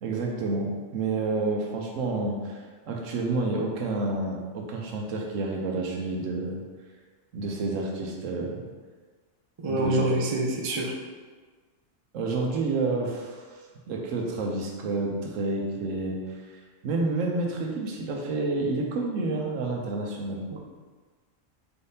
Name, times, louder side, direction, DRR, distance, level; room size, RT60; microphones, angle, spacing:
voice 1, 0.0-6.6 7.3-8.6 9.7-10.0 12.1-13.4 13.9-16.2 16.8-20.4, right 3 dB, 85° right, 0 dB, 1.1 m, -29 dB
voice 2, 9.6-10.9 20.5-20.6, right 2 dB, 55° right, -1 dB, 0.3 m, -27 dB
4.6 x 3.5 x 2.7 m, 1.4 s
omnidirectional pair, 1.3 m